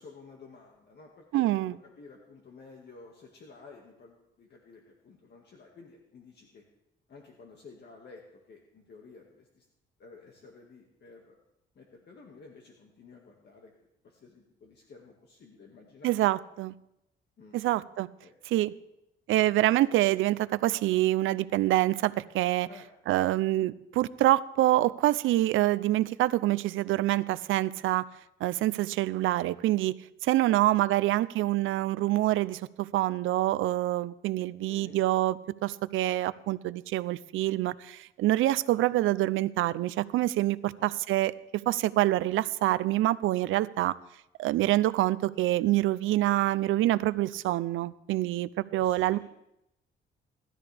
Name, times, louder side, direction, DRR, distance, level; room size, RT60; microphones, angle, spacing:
voice 1, 0.0-6.6 7.1-9.7 10.0-11.4 11.8-16.2 17.4-17.7 18.2-18.3 22.7-22.9 30.5-30.6 30.9-31.0 34.7-35.0 40.8-40.9 48.8-49.2, left 4 dB, 55° left, 2.0 m, -52 dB
voice 2, 1.3-1.8 16.0-16.7 17.5-18.1 18.5-18.7 19.3-22.7 23.1-28.0 28.4-29.9 30.2-43.9 44.4-49.2, right 15 dB, 85° right, 0.5 m, -26 dB
18.5 x 12.5 x 3.4 m
cardioid pair, 90°, 20 cm